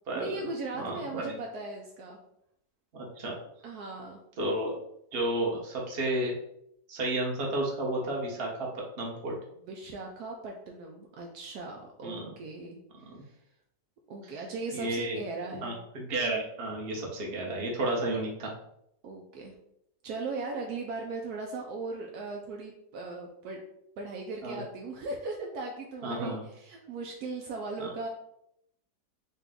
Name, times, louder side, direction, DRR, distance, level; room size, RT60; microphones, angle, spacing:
voice 1, 0.1-2.2 3.6-4.2 9.6-12.8 13.2-13.4 14.1-15.8 19.0-19.5 20.0-23.6 24.0-28.1, right 3 dB, 75° right, 1 dB, 1.0 m, -38 dB
voice 2, 0.8-1.3 2.9-3.3 4.4-4.8 5.1-6.3 6.9-8.7 9.0-9.3 12.0-12.3 13.1-13.2 14.7-15.2 15.6-18.5 24.4-24.6 26.0-26.4 27.8-27.9, right 1 dB, 40° right, -2 dB, 1.0 m, -32 dB
4.2 x 2.3 x 3.6 m, 0.75 s
omnidirectional pair, 1.8 m